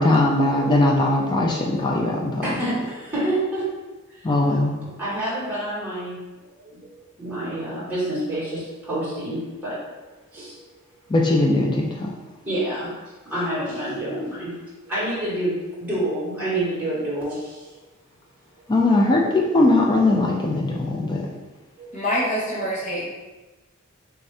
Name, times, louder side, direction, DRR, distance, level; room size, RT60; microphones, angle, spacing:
voice 1, 0.0-2.4 4.2-4.7 11.1-12.1 18.7-21.3, left 2 dB, 20° left, -1 dB, 0.4 m, -20 dB
voice 2, 2.4-3.7 4.1-4.3 4.8-6.2 6.6-9.8 10.3-10.7 12.4-13.0 13.2-14.5 14.8-17.8 18.5-18.6 21.8-21.9, right 1 dB, 10° right, -11 dB, 1.3 m, -28 dB
voice 3, 21.9-23.1, equal, 35° left, -6 dB, 1.1 m, -25 dB
3.5 x 2.6 x 3.2 m, 1.2 s
head